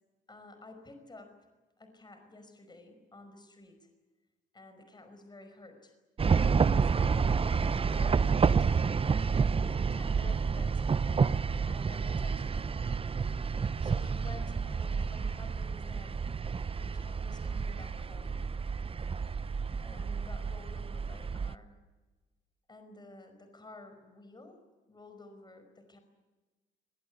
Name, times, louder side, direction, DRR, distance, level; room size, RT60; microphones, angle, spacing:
voice 1, 0.3-1.4 1.8-3.9 4.5-5.9 6.8-8.7 9.1-12.7 13.8-16.2 16.8-18.5 19.8-21.8 22.7-24.6 24.9-26.0, left 2 dB, 20° left, 7 dB, 5.3 m, -52 dB
sound 1, 6.2-21.5, right 5 dB, 30° right, 0.7 m, -29 dB
24.0 x 19.5 x 9.6 m, 1.2 s
cardioid pair, 90°, 20 cm